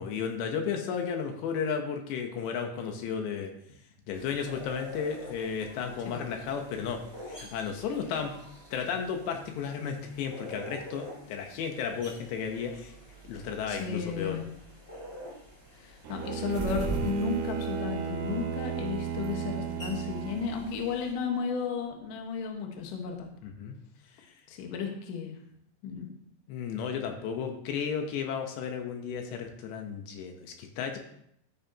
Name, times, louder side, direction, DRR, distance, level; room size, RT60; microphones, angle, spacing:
voice 1, 0.0-3.5 4.1-8.3 8.7-12.9 13.2-14.4 23.4-23.8 24.2-24.3 26.5-31.0, left 6 dB, 80° left, 4 dB, 3.2 m, -34 dB
sound 1, 4.1-21.1, right 1 dB, 10° left, 1.6 m, -44 dB
voice 2, 13.7-14.4 15.8-23.3 24.5-25.4 25.8-26.1, left 5 dB, 60° left, 2 dB, 2.5 m, -33 dB
Bowed string instrument, 16.0-20.9, right 8 dB, 75° right, 2.8 m, -34 dB
13.0 x 8.9 x 2.9 m, 0.71 s
omnidirectional pair, 5.0 m